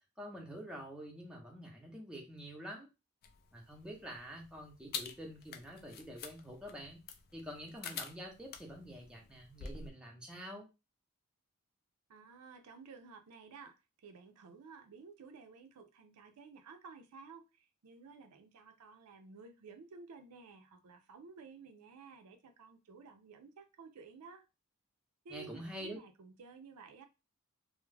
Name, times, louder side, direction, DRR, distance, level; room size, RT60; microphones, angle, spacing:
voice 1, 0.2-2.9 3.5-7.0 7.3-10.7 25.3-26.0, equal, 5° right, 0.6 m, -47 dB
sound 1, 3.2-9.9, left 6 dB, 45° left, 0.3 m, -48 dB
voice 2, 12.1-24.4 25.2-27.0, right 5 dB, 85° right, 0.4 m, -54 dB
2.2 x 2.0 x 3.2 m
head